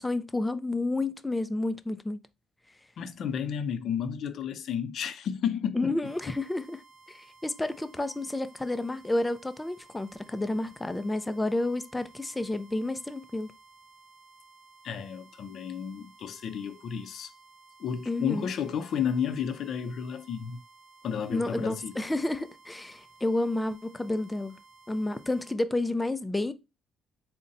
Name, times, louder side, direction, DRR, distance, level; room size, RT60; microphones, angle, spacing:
voice 1, 0.0-2.2 5.7-6.8 7.1-13.5 18.1-18.5 21.3-24.6 24.9-26.5, left 2 dB, 10° left, 0.4 m, -30 dB
voice 2, 3.0-5.9 14.8-17.3 17.8-20.6 21.0-22.0, left 8 dB, 60° left, 0.5 m, -32 dB
sound 1, 6.0-25.6, right 4 dB, 55° right, 1.2 m, -56 dB
3.9 x 2.1 x 3.8 m
cardioid pair, 120°, 0 cm